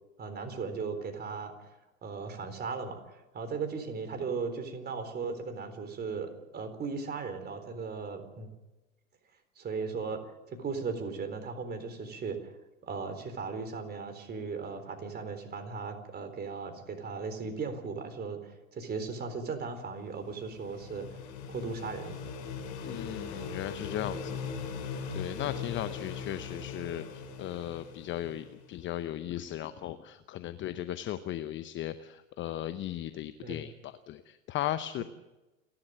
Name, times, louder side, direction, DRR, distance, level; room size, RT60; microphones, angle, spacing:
voice 1, 0.2-1.5 2.0-8.5 9.6-10.2 10.5-12.5 12.8-21.1 21.5-22.2 33.4-33.6, right 5 dB, 25° right, 7 dB, 4.0 m, -37 dB
sound 1, 19.9-28.7, left 5 dB, 50° left, 5.2 m, -40 dB
voice 2, 22.8-24.4 25.1-35.0, left 12 dB, 30° left, 12 dB, 0.9 m, -37 dB
29.0 x 12.0 x 7.7 m, 1.1 s
hypercardioid pair, 95°, 40 cm